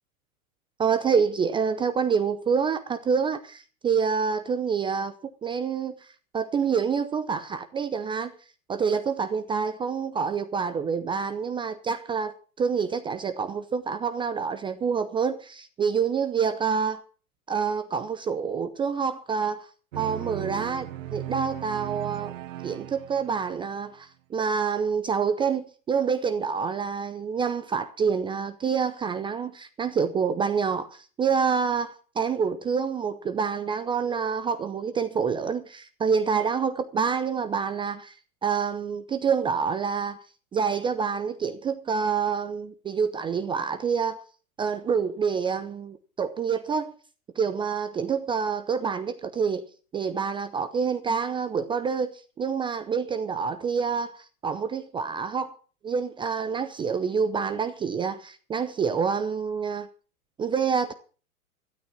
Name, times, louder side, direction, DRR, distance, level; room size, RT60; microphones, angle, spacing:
voice 1, 0.8-5.1 5.4-6.1 6.3-8.3 8.7-17.0 17.5-19.7 19.9-22.3 22.6-38.2 38.4-40.2 40.5-44.2 44.6-46.9 47.4-49.6 49.9-55.5 55.8-59.9 60.4-60.9, right 6 dB, 10° right, 0.6 m, -27 dB
sound 1, 19.9-23.7, right 13 dB, 60° right, 1.2 m, -37 dB
13.0 x 12.5 x 5.9 m
hypercardioid pair, 115°, 45 cm